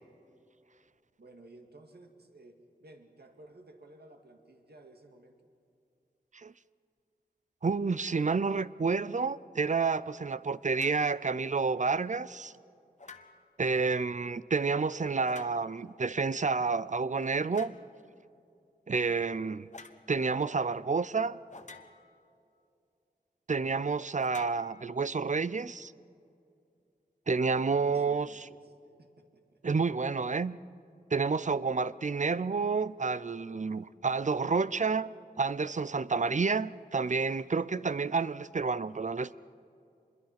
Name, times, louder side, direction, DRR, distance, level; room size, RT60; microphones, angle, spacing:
voice 1, 1.2-5.5 27.5-28.7 29.0-29.6, right 2 dB, 75° right, 2.2 m, -55 dB
voice 2, 7.6-12.5 13.6-17.7 18.9-19.7 20.1-21.4 23.5-25.9 27.3-28.5 29.6-30.6 31.1-35.1 35.4-39.3, right 4 dB, 45° right, 0.5 m, -29 dB
sound 1, 10.7-11.1 13.0-13.6 15.2-15.9 17.5-17.9 19.7-20.0 21.5-22.3 24.2-25.3, left 3 dB, 45° left, 1.2 m, -50 dB
25.5 x 21.5 x 5.9 m
wide cardioid pair, 70°, 17 cm